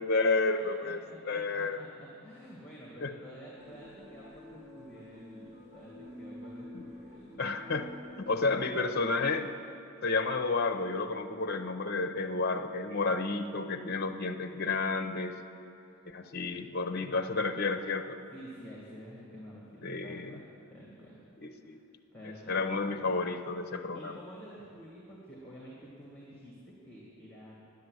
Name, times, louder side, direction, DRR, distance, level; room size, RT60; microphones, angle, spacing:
voice 1, 0.0-1.0 1.3-1.8 3.0-3.1 6.7-6.8 7.4-9.5 10.0-15.4 16.1-18.2 19.8-20.4 21.4-21.8 22.5-24.2, left 3 dB, 45° left, 6 dB, 0.6 m, -31 dB
voice 2, 0.6-7.5 15.8-16.1 18.3-21.2 21.6-21.8 22.1-23.2 23.9-27.5, equal, 5° left, -5 dB, 2.0 m, -50 dB
sound 1, 3.6-8.8, left 1 dB, 35° right, 2.8 m, -49 dB
10.5 x 9.4 x 7.9 m, 2.7 s
head